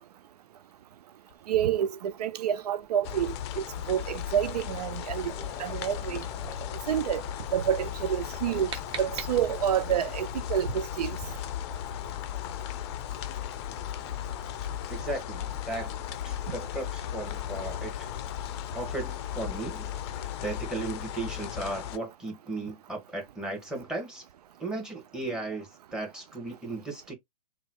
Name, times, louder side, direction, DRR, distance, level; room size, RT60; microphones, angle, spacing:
Gurgling, 0.7-0.8 1.3-1.5 1.9-2.1 2.3-10.4 10.7-11.4, left 4 dB, 15° left, 1.0 m, -49 dB
voice 1, 1.5-5.3 5.6-6.2 6.9-7.2 7.5-8.7 9.0-11.2, right 10 dB, 75° right, 0.4 m, -28 dB
sound 1, 3.0-22.0, left 10 dB, 45° left, 0.5 m, -36 dB
sound 2, 8.2-9.9, right 6 dB, 25° right, 0.9 m, -41 dB
voice 2, 14.9-15.9 16.2-18.1 18.7-24.2 24.6-27.1, right 2 dB, 5° right, 1.5 m, -36 dB
3.8 x 2.4 x 2.9 m
hypercardioid pair, 125°, 20 cm